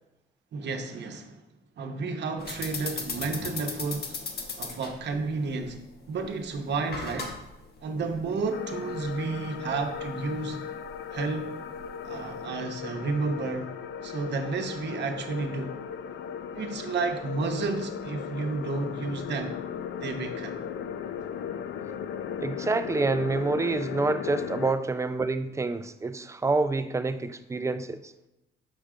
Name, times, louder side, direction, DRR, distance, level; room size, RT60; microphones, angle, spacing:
voice 1, 0.5-1.4 1.8-4.2 4.6-5.8 6.1-7.3 7.8-10.7 11.1-11.6 12.0-13.7 14.0-15.8 16.5-19.5 20.0-20.6, right 4 dB, 60° right, 0.9 m, -31 dB
sound 1, 2.4-12.4, left 4 dB, 50° left, 1.2 m, -39 dB
sound 2, 8.5-24.7, left 8 dB, 70° left, 0.4 m, -37 dB
voice 2, 22.4-28.1, right 3 dB, 15° right, 0.4 m, -27 dB
6.6 x 4.8 x 3.7 m
cardioid pair, 90°, 20 cm